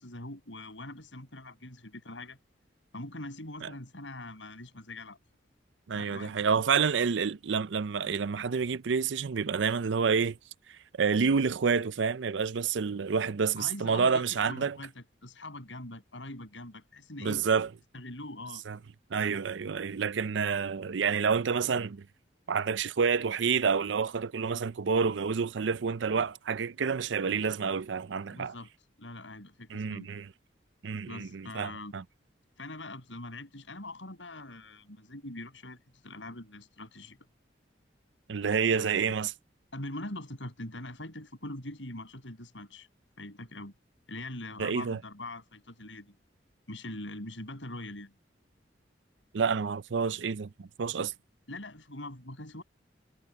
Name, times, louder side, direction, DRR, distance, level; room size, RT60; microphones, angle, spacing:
voice 1, 0.0-2.4 2.9-5.2 5.9-6.3 13.6-17.4 17.9-18.6 28.3-28.7 29.0-30.1 31.1-31.9 32.6-37.2 38.7-39.1 39.7-42.9 43.2-43.7 44.1-46.1 46.7-48.1 51.5-52.6, left 1 dB, 85° left, 7.5 m, -43 dB
voice 2, 5.9-10.4 11.0-14.8 17.2-17.7 18.7-18.8 19.1-22.0 22.5-28.5 29.7-30.3 30.8-32.0 38.3-39.3 44.6-45.0 49.3-51.1, right 5 dB, 80° right, 0.5 m, -28 dB
head